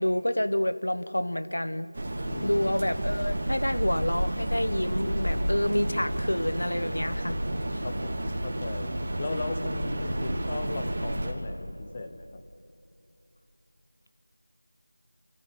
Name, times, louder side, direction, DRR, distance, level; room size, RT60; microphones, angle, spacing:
voice 1, 0.0-1.9 2.4-7.4 7.7-7.8, left 1 dB, 90° left, 12 dB, 1.2 m, -28 dB
sound 1, 1.9-11.3, right 1 dB, 30° right, 2.3 m, -31 dB
voice 2, 2.3-2.7 7.8-8.9 9.2-12.4, left 3 dB, 20° left, 6 dB, 0.9 m, -37 dB
27.0 x 15.0 x 9.5 m, 2.8 s
figure-of-eight pair, 175°, 0 cm